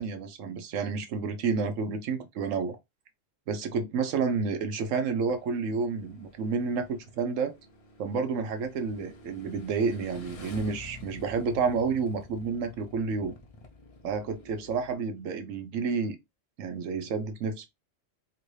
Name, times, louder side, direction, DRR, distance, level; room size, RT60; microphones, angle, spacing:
voice 1, 0.0-2.8 3.5-7.5 8.0-13.4 14.0-16.2 16.6-17.7, right 5 dB, 80° right, 1.1 m, -30 dB
Motorcycle / Engine, 5.2-14.9, left 2 dB, 45° left, 0.5 m, -49 dB
3.1 x 2.6 x 3.1 m
omnidirectional pair, 1.3 m